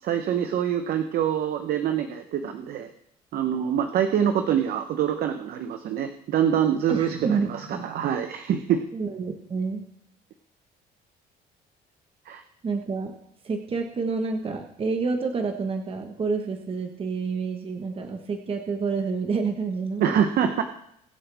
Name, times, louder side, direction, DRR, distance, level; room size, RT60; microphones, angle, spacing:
voice 1, 0.0-2.9 3.3-8.8 12.3-12.4 20.0-20.6, right 9 dB, 65° right, 7 dB, 1.0 m, -25 dB
voice 2, 6.9-7.8 8.9-9.8 12.6-13.1 13.4-20.2, right 4 dB, 35° right, 4 dB, 1.4 m, -28 dB
22.0 x 7.6 x 3.5 m, 0.74 s
cardioid pair, 110°, 17 cm